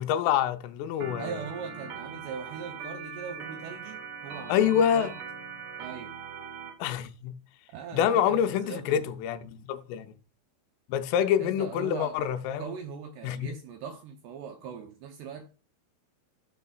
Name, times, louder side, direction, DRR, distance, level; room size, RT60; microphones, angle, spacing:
voice 1, 0.0-1.3 4.5-5.1 6.8-7.3 7.9-10.1 10.9-12.7 13.2-13.5, left 9 dB, 85° left, 3.3 m, -26 dB
Organ, 1.0-6.7, right 5 dB, 50° right, 3.0 m, -41 dB
voice 2, 1.2-5.1 5.8-6.2 7.7-9.0 11.4-12.2 12.6-15.5, right 7 dB, 75° right, 2.5 m, -40 dB
13.5 x 6.7 x 2.4 m
omnidirectional pair, 5.7 m